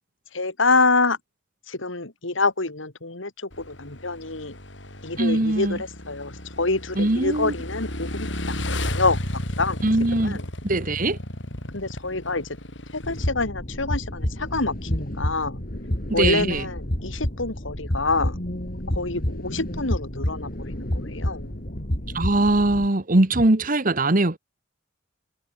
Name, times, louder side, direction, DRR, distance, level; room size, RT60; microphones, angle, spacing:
voice 1, 0.3-1.2 1.7-3.3 3.7-4.6 5.0-9.2 9.6-9.8 10.2-10.4 11.7-12.4 12.9-15.6 16.1-18.4 18.9-21.5, left 3 dB, 85° left, 3.2 m, -26 dB
Motorcycle / Engine, 3.5-13.3, left 1 dB, 70° left, 7.1 m, -33 dB
voice 2, 5.2-5.8 6.9-7.5 9.8-11.2 16.1-16.7 22.1-24.4, right 2 dB, 45° right, 1.5 m, -21 dB
sound 1, 13.0-22.9, equal, 50° left, 3.6 m, -29 dB
head